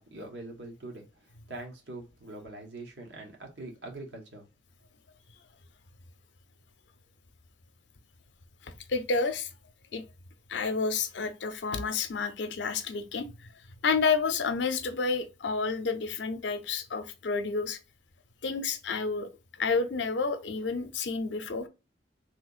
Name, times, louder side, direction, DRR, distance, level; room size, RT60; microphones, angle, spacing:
voice 1, 0.0-4.5, right 2 dB, 75° right, 1.2 m, -43 dB
voice 2, 8.6-9.5 9.9-10.0 10.5-13.3 13.8-17.8 18.4-19.3 19.6-21.7, left 4 dB, 80° left, 0.6 m, -30 dB
3.4 x 2.8 x 2.4 m
head